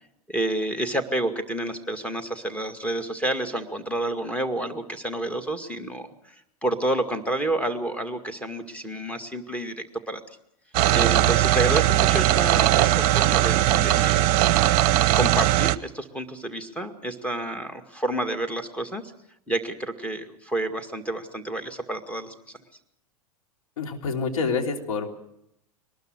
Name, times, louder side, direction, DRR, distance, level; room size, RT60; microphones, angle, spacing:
voice 1, 0.3-10.2 10.9-14.4 15.1-19.1 19.5-22.3, right 1 dB, 5° left, 6 dB, 2.1 m, -29 dB
sound 1, 10.7-15.8, right 15 dB, 45° right, 0.8 m, -19 dB
voice 2, 23.8-25.2, left 4 dB, 65° left, 2 dB, 3.2 m, -27 dB
22.5 x 20.0 x 6.3 m, 0.78 s
figure-of-eight pair, 90°, 19 cm